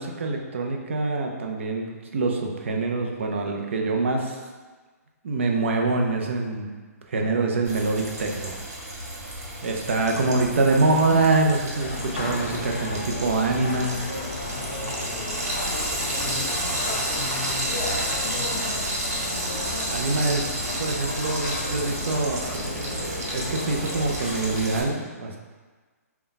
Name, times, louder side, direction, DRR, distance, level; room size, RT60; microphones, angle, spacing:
voice 1, 0.0-4.4 5.2-6.7 7.1-8.5 9.6-14.0 19.9-25.4, right 3 dB, 45° right, 1 dB, 0.5 m, -25 dB
Frying (food), 7.6-24.8, right 1 dB, 75° right, 1.2 m, -31 dB
voice 2, 9.5-9.9 15.0-19.0, left 3 dB, 5° left, -14 dB, 1.0 m, -40 dB
sound 1, 11.8-24.8, left 2 dB, 35° left, 0.5 m, -33 dB
3.9 x 2.3 x 4.0 m, 1.4 s
hypercardioid pair, 180°, 9 cm